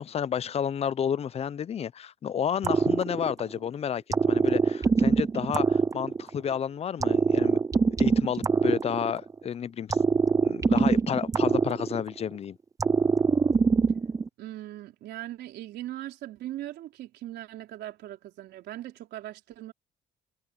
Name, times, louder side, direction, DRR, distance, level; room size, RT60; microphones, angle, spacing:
voice 1, 0.0-7.6 8.0-10.0 10.4-12.6, left 8 dB, 35° left, 0.5 m, -31 dB
sound 1, 2.6-3.6 4.1-6.5 7.0-9.4 9.9-12.3 12.8-14.3, right 5 dB, 20° right, 0.5 m, -23 dB
voice 2, 14.4-19.7, right 14 dB, 80° right, 3.9 m, -40 dB
cardioid pair, 110°, 17 cm